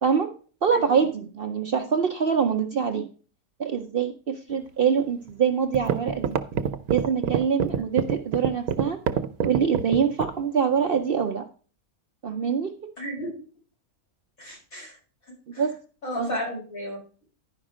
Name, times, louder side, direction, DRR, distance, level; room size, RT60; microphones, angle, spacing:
voice 1, 0.0-0.3 0.6-3.1 3.6-6.4 6.9-9.0 9.4-11.4 12.2-12.8 15.5-15.8 16.2-16.4, right 6 dB, 50° right, 6 dB, 0.7 m, -24 dB
sound 1, 5.3-5.4 5.7-10.4, right 8 dB, 85° right, 1.2 m, -25 dB
voice 2, 13.0-13.3 14.4-15.0 15.5-15.7 16.0-17.2, left 1 dB, 70° left, -3 dB, 5.6 m, -34 dB
10.5 x 5.2 x 4.9 m, 0.39 s
omnidirectional pair, 1.5 m